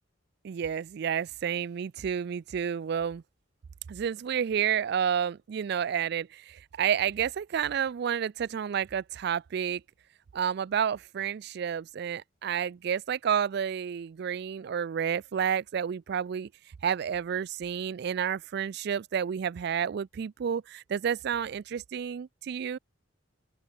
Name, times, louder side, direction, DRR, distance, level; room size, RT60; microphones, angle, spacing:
voice 1, 0.4-3.2 3.9-9.8 10.3-16.5 16.8-22.8, right 8 dB, 60° right, 0.3 m, -30 dB
open air
head